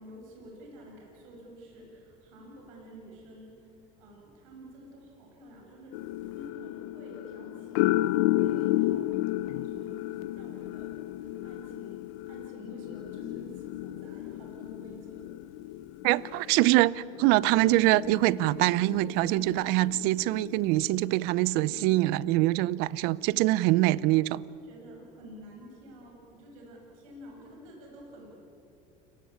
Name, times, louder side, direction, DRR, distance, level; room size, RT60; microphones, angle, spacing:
voice 1, 0.0-5.9 6.2-12.0 12.3-15.3 24.3-28.4, equal, 90° right, 7.3 m, -49 dB
sound 1, 5.9-21.1 21.6-22.0, left 16 dB, 85° left, 0.8 m, -33 dB
voice 2, 16.0-24.4, right 18 dB, 70° right, 0.7 m, -24 dB
29.5 x 19.0 x 8.7 m
supercardioid pair, 115°, 17 cm